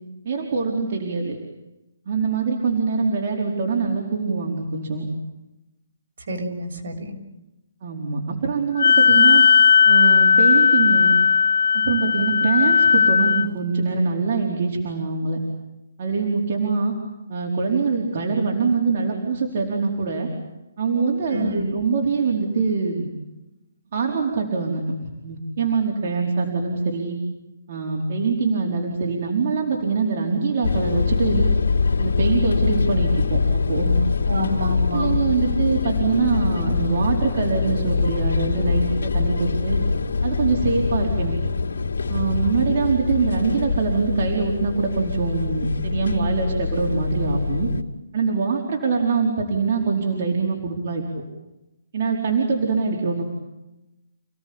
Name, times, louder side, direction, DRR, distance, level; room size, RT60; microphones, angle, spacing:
voice 1, 0.2-1.4 2.1-5.1 7.8-9.4 9.9-11.2 11.7-15.4 16.0-16.9 17.3-20.3 20.8-23.1 23.9-24.8 25.2-27.2 27.7-31.5 32.0-34.0 34.6-39.8 40.2-41.3 42.1-47.7 48.1-51.0 51.9-53.2, right 4 dB, 45° right, -1 dB, 4.7 m, -23 dB
voice 2, 6.3-7.2 21.3-21.7 34.3-35.1, left 1 dB, 60° right, 2 dB, 6.7 m, -27 dB
Wind instrument woodwind instrument, 8.8-13.5, left 6 dB, 70° left, 1.0 m, -16 dB
sound 1, 30.6-47.8, left 5 dB, 85° left, 2.6 m, -24 dB
29.5 x 18.0 x 8.9 m, 0.96 s
hypercardioid pair, 165°, 0 cm